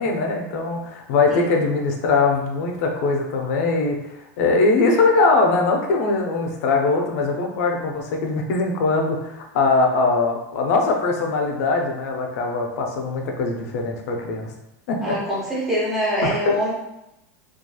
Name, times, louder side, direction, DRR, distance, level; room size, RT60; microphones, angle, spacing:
voice 1, 0.0-4.0 4.4-14.5 14.9-15.2 16.2-16.6, left 3 dB, 55° left, 2 dB, 0.4 m, -21 dB
voice 2, 15.0-16.7, equal, ahead, -7 dB, 0.6 m, -24 dB
2.7 x 2.3 x 2.2 m, 0.87 s
supercardioid pair, 170°, 10 cm